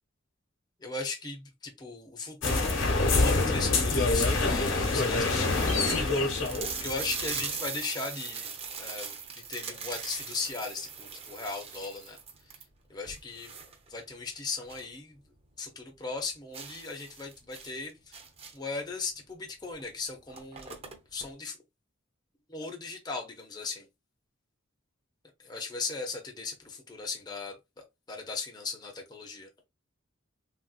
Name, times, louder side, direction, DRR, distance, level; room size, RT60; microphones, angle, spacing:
voice 1, 0.8-8.5 8.8-9.1 9.5-12.2 12.9-13.5 13.9-15.2 15.6-18.2 18.5-20.8 21.1-21.6 22.5-23.9 25.5-27.6 28.1-29.5, left 4 dB, 20° left, 0.5 m, -37 dB
sound 1, 2.4-7.5, left 3 dB, 70° left, 0.9 m, -26 dB
sound 2, 3.9-4.1 4.7-4.8 5.0-5.1 5.4-15.0 15.3-15.4 15.8-15.9 16.5-18.8 19.7-19.9 20.1-21.3, right 6 dB, 30° right, 0.5 m, -40 dB
3.2 x 2.6 x 2.3 m
head